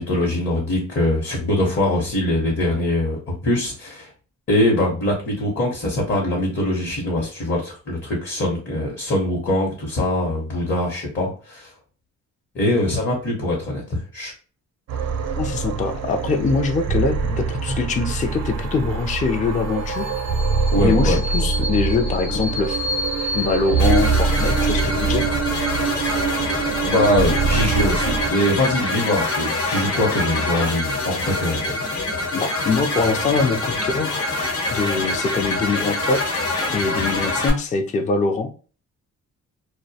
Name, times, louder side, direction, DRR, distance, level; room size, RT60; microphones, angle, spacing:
voice 1, 0.0-4.1 4.5-11.7 12.5-14.3 20.7-21.2 25.8-26.2 26.8-31.6 37.0-37.1, left 1 dB, 40° left, -2 dB, 0.8 m, -22 dB
sound 1, 14.9-28.3, right 4 dB, 55° right, 0.5 m, -23 dB
voice 2, 15.4-20.1 20.8-22.9 23.3-25.3 32.3-34.3 34.7-36.4 36.7-38.5, left 4 dB, 25° left, 5 dB, 0.3 m, -23 dB
sound 2, 23.8-37.5, left 2 dB, 60° left, 1.0 m, -25 dB
2.2 x 2.1 x 2.6 m, 0.38 s
cardioid pair, 95°, 31 cm